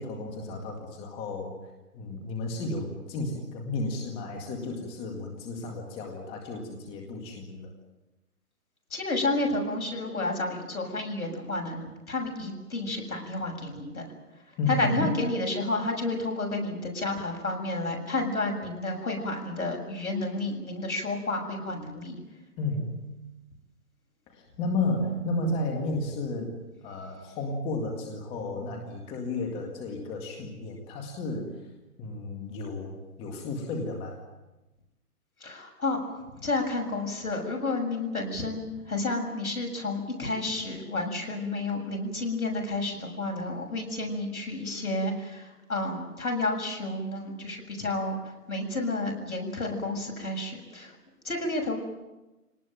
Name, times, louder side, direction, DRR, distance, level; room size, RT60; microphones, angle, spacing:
voice 1, 0.0-1.6 1.9-7.7 14.6-15.2 22.6-23.1 24.3-26.5 26.8-31.6 32.0-34.2, left 2 dB, 10° left, 2 dB, 2.0 m, -33 dB
voice 2, 8.9-14.1 14.7-22.2 35.4-36.0 36.4-48.2 48.5-50.9 51.2-51.8, left 2 dB, 65° left, 2 dB, 7.4 m, -31 dB
24.0 x 19.0 x 9.1 m, 1.0 s
hypercardioid pair, 155°, 46 cm